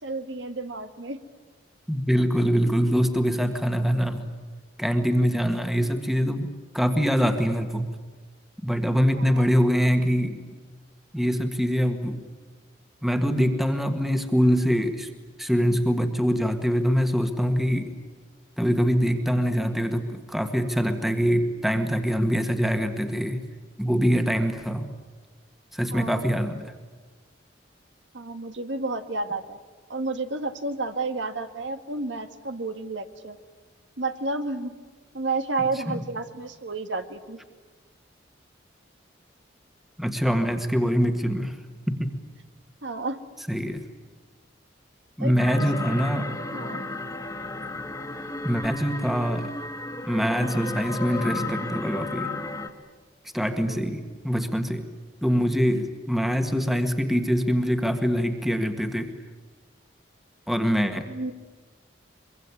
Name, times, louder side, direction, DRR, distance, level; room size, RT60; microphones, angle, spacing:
voice 1, 0.0-1.2 9.2-9.5 25.9-26.3 28.1-29.6 29.9-33.4 34.0-34.7 35.1-37.4 42.8-43.2 45.2-46.0 46.5-46.8 53.7-53.9 61.1-61.3, right 3 dB, 75° right, 8 dB, 1.6 m, -31 dB
voice 2, 1.9-4.3 4.8-7.9 8.6-10.4 11.1-12.2 13.0-15.1 15.4-17.9 18.6-23.4 23.8-24.9 25.7-26.6 35.9-36.0 40.0-41.6 41.9-42.1 43.5-43.8 45.2-46.3 48.4-49.5 50.1-52.3 53.3-54.8 55.2-59.1 60.5-61.1, equal, ahead, 7 dB, 1.7 m, -24 dB
sound 1, 45.4-52.7, left 2 dB, 20° left, 2.0 m, -33 dB
24.0 x 23.5 x 9.8 m, 1.4 s
head